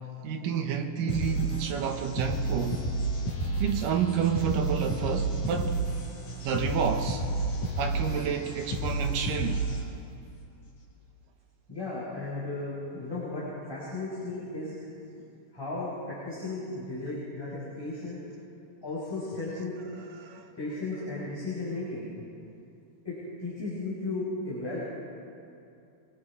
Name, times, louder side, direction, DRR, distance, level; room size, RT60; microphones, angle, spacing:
voice 1, 0.2-2.8 3.6-5.9 6.4-7.2 7.8-9.6 20.2-20.5, right 7 dB, 70° right, 2.5 m, -29 dB
sound 1, 1.1-10.1, right 2 dB, 45° left, 4.7 m, -31 dB
voice 2, 11.7-14.7 15.5-18.2 18.8-19.7 20.6-22.1 23.0-24.8, left 2 dB, 5° left, 5.1 m, -35 dB
24.0 x 22.0 x 4.9 m
omnidirectional pair, 4.4 m